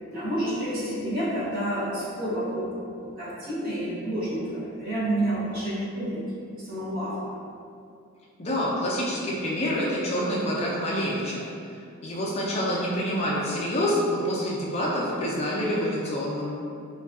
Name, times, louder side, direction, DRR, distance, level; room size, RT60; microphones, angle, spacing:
voice 1, 0.1-2.7 3.0-6.2 6.6-7.4, right 1 dB, 45° right, -9 dB, 0.6 m, -29 dB
voice 2, 8.4-11.5 12.0-16.5, equal, 30° left, -4 dB, 0.4 m, -27 dB
2.5 x 2.2 x 2.3 m, 2.4 s
head